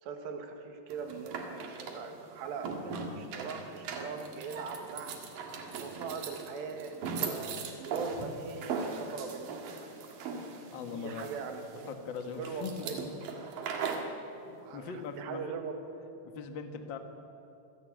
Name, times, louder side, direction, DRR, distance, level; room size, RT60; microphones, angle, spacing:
voice 1, 0.0-5.2 5.7-9.9 10.8-11.9 12.4-13.0 13.8-14.1 14.6-15.8, right 5 dB, 90° right, 5 dB, 4.0 m, -41 dB
sound 1, 0.9-14.1, right 5 dB, 65° right, 3.2 m, -39 dB
voice 2, 10.7-11.3 11.9-12.9 14.2-15.5 16.3-17.0, left 5 dB, 70° left, 6 dB, 1.1 m, -40 dB
26.5 x 14.0 x 9.3 m, 2.8 s
omnidirectional pair, 4.7 m